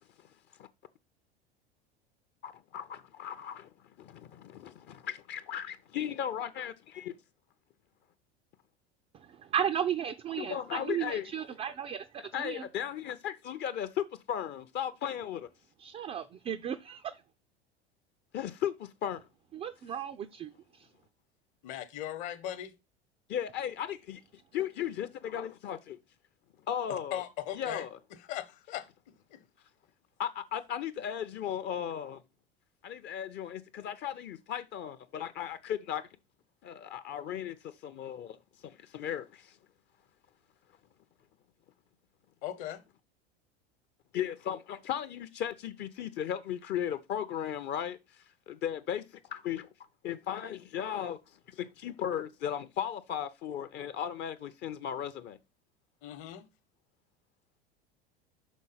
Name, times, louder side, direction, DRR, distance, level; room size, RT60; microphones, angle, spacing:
voice 1, 2.4-3.7 4.0-7.1 10.4-11.3 12.3-15.5 18.3-19.2 23.3-26.0 26.7-27.2 27.6-27.9 30.2-32.2 32.8-36.0 36.6-38.4 38.6-39.6 44.1-49.7 50.0-55.4, left 9 dB, 35° left, 0.6 m, -36 dB
voice 2, 9.3-12.6 15.8-17.2 19.5-20.5, right 9 dB, 20° right, 0.4 m, -34 dB
voice 3, 21.6-22.7 26.9-29.4 42.4-42.8 56.0-56.5, left 11 dB, 50° left, 1.1 m, -39 dB
6.3 x 3.9 x 5.6 m
figure-of-eight pair, 80°, 31 cm